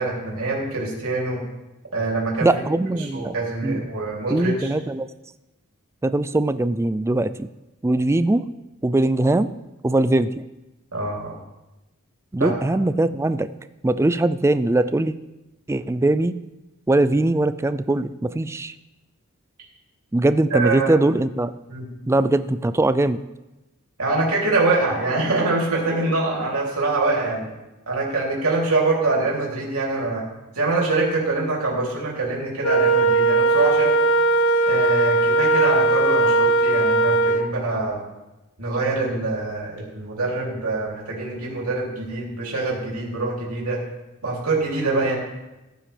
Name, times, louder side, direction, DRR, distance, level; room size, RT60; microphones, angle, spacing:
voice 1, 0.0-1.4 1.9-2.5 3.0-4.7 10.9-11.4 12.4-12.5 20.5-20.9 21.7-21.9 24.0-27.5 27.9-30.2 30.5-33.9 34.6-38.0 38.6-43.8 44.2-45.2, right 3 dB, 75° right, -4 dB, 3.1 m, -24 dB
voice 2, 2.4-3.3 3.6-3.8 4.3-5.1 6.0-7.5 7.8-8.4 8.8-9.5 9.8-10.4 12.3-13.5 13.8-15.2 15.7-16.3 16.9-18.7 20.1-21.5 22.1-23.2, right 2 dB, 10° right, 13 dB, 0.3 m, -21 dB
Wind instrument woodwind instrument, 32.6-37.5, right 2 dB, 70° left, 0.7 m, -18 dB
15.0 x 10.0 x 3.4 m, 1.0 s
head